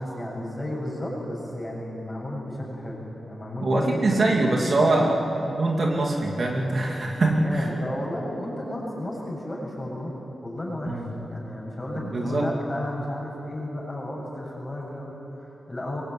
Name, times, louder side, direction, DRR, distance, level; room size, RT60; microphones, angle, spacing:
voice 1, 0.0-4.3 7.4-10.1 10.4-11.0 11.3-16.0, left 1 dB, 15° left, -4 dB, 7.5 m, -33 dB
voice 2, 3.6-7.7 10.9-11.1 12.0-12.5, right 2 dB, 45° right, 0 dB, 2.7 m, -23 dB
25.0 x 23.0 x 9.5 m, 3.0 s
wide cardioid pair, 180°, 0 cm